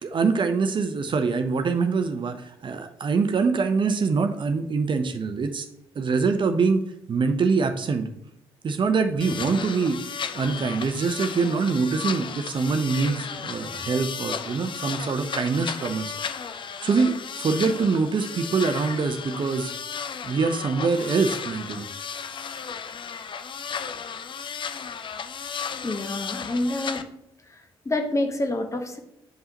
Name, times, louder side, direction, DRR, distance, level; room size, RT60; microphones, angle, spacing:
voice 1, 0.0-5.7 5.9-8.1 8.6-10.0 10.3-16.1 16.8-19.7 20.2-21.9, right 4 dB, 40° right, 7 dB, 0.6 m, -24 dB
sound 1, 9.2-27.0, left 6 dB, 40° left, 0.6 m, -34 dB
voice 2, 25.8-27.0 27.5-29.0, left 2 dB, 25° left, 6 dB, 1.0 m, -28 dB
7.7 x 5.5 x 2.9 m, 0.80 s
hypercardioid pair, 45°, 13 cm